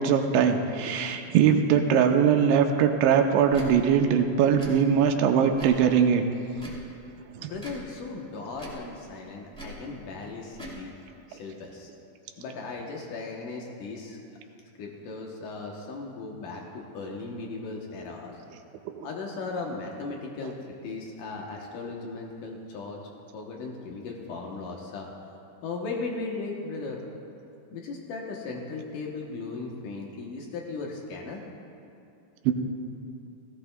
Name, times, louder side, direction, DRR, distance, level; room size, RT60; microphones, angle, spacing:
voice 1, 0.0-6.2 7.4-7.5 18.9-19.1 32.5-32.6, right 7 dB, 85° right, 4 dB, 2.9 m, -21 dB
Tick / Tick-tock, 3.5-3.7 4.5-4.7 5.5-5.8 6.5-6.8 7.5-7.8 8.5-8.8 9.5-9.8 10.5-10.8, right 1 dB, 5° left, 1.0 m, -41 dB
voice 2, 7.4-10.9 11.3-11.9 12.4-14.2 14.8-18.4 19.0-23.0 23.3-25.1 25.6-27.0 27.7-31.4, left 3 dB, 85° left, -1 dB, 1.8 m, -37 dB
17.5 x 16.5 x 2.3 m, 2.6 s
omnidirectional pair, 5.2 m